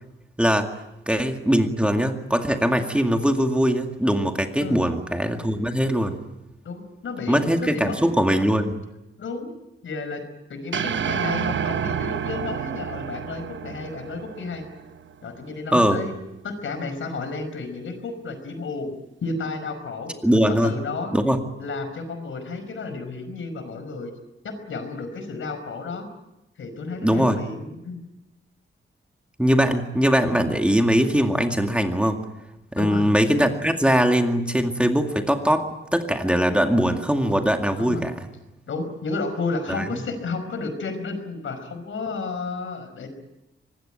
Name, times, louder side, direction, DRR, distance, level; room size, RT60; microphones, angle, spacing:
voice 1, 0.4-0.7 1.1-6.2 7.3-8.7 15.7-16.0 20.2-20.7 21.1-21.4 27.0-27.4 29.4-32.2 32.7-38.1 39.7-39.9, equal, 5° right, 4 dB, 2.1 m, -21 dB
voice 2, 6.6-8.0 9.2-9.5 9.8-10.2 10.5-14.7 15.2-16.1 16.4-18.9 19.2-20.1 20.6-21.2 21.6-24.1 24.4-26.1 26.6-28.0 32.7-33.1 37.8-38.0 38.7-43.1, left 3 dB, 75° left, 9 dB, 5.2 m, -32 dB
sound 1, 10.7-15.1, right 8 dB, 65° right, 1.0 m, -29 dB
25.0 x 20.5 x 9.1 m, 0.94 s
wide cardioid pair, 130°, 21 cm